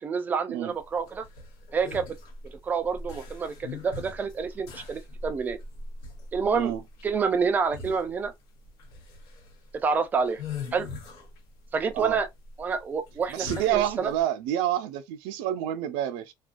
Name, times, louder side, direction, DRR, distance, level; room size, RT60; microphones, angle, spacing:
voice 1, 0.0-1.2 1.7-2.2 2.4-5.6 6.3-6.7 7.0-8.3 9.8-10.4 10.7-10.9 11.7-12.3 12.6-13.5 13.7-14.1, right 5 dB, 20° right, 0.3 m, -28 dB
sound 1, 0.8-14.2, left 4 dB, 90° left, 0.8 m, -41 dB
voice 2, 13.3-16.3, right 12 dB, 90° right, 0.4 m, -28 dB
2.3 x 2.3 x 2.4 m
cardioid pair, 170°, 9 cm